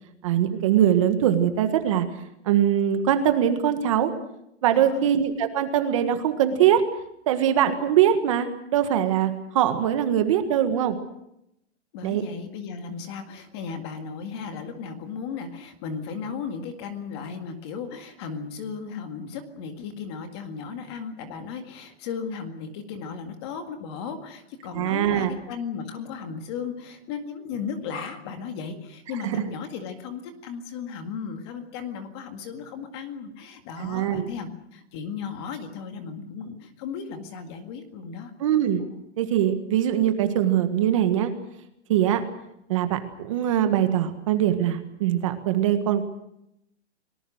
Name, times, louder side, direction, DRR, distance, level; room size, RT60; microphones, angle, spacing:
voice 1, 0.2-2.0 2.4-4.1 4.6-6.8 7.3-11.0 12.0-12.2 24.7-25.3 29.2-29.4 33.8-34.3 38.4-38.8 39.2-41.3 41.9-42.2 42.7-46.0, right 10 dB, 25° right, 8 dB, 1.6 m, -22 dB
voice 2, 4.7-5.1 11.9-38.3, left 6 dB, 25° left, 6 dB, 1.9 m, -35 dB
30.0 x 19.5 x 6.4 m, 0.80 s
hypercardioid pair, 175°, 36 cm